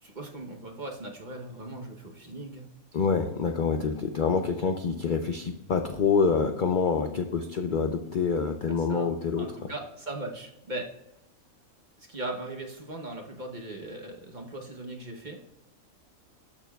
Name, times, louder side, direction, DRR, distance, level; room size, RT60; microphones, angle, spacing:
voice 1, 0.0-2.7 8.6-10.9 12.0-15.4, right 2 dB, 40° right, 2 dB, 0.9 m, -39 dB
voice 2, 2.9-9.5, left 5 dB, 65° left, 6 dB, 0.5 m, -26 dB
13.0 x 6.7 x 2.3 m, 0.90 s
omnidirectional pair, 1.5 m